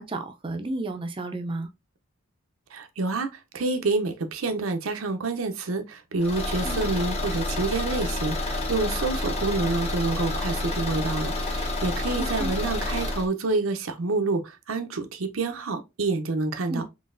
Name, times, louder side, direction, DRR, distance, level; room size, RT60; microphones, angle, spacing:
voice 1, 0.0-1.7 6.6-6.9 12.2-12.5 16.7-16.8, right 2 dB, 25° right, 0.5 m, -32 dB
voice 2, 2.7-16.8, right 3 dB, 85° right, 0.6 m, -28 dB
Car / Engine, 6.2-13.3, left 2 dB, 30° left, 0.8 m, -29 dB
3.8 x 2.9 x 2.5 m
head